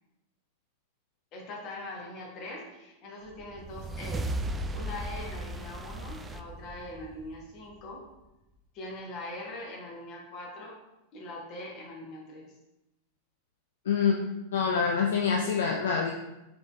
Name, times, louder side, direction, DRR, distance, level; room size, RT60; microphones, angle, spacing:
voice 1, 1.3-4.3 4.7-8.1 8.7-10.8 11.1-12.5, left 1 dB, 40° left, -2 dB, 1.4 m, -42 dB
sound 1, 3.3-7.9, right 1 dB, 15° right, 0.3 m, -36 dB
voice 2, 13.9-14.2 14.5-16.1, left 6 dB, 60° left, 1 dB, 0.4 m, -25 dB
4.6 x 4.0 x 2.5 m, 0.95 s
figure-of-eight pair, 90°, 0 cm